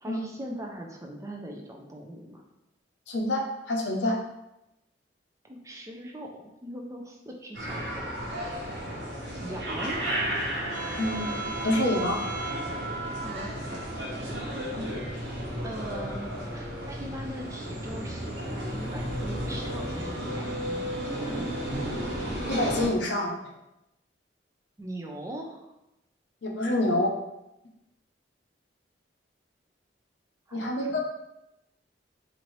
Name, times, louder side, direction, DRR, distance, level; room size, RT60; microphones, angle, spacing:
voice 1, 0.0-2.4 5.4-8.3 9.4-10.5 13.2-13.6 15.6-21.6 24.8-25.7 30.5-31.0, right 1 dB, 20° right, 1 dB, 0.4 m, -41 dB
voice 2, 3.1-4.2 11.0-12.2 22.5-23.3 26.4-27.2 30.5-31.0, left 1 dB, 70° left, 1 dB, 0.7 m, -27 dB
sound 1, 7.5-22.9, right 1 dB, 80° right, 1.2 m, -33 dB
4.4 x 2.6 x 3.1 m, 0.89 s
head